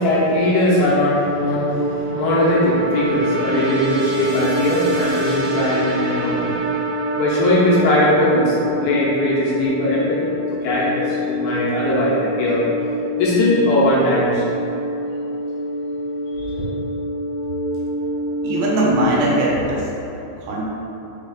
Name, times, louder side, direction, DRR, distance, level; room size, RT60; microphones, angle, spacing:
voice 1, 0.0-6.6 7.2-12.6 13.2-14.6 16.4-16.6, left 1 dB, 80° left, -7 dB, 2.4 m, -19 dB
sound 1, 1.4-19.1, equal, 65° right, 2.4 m, -26 dB
voice 2, 18.4-19.9 20.4-20.7, right 1 dB, 85° right, -4 dB, 3.0 m, -20 dB
6.4 x 2.3 x 3.6 m, 2.9 s
omnidirectional pair, 4.7 m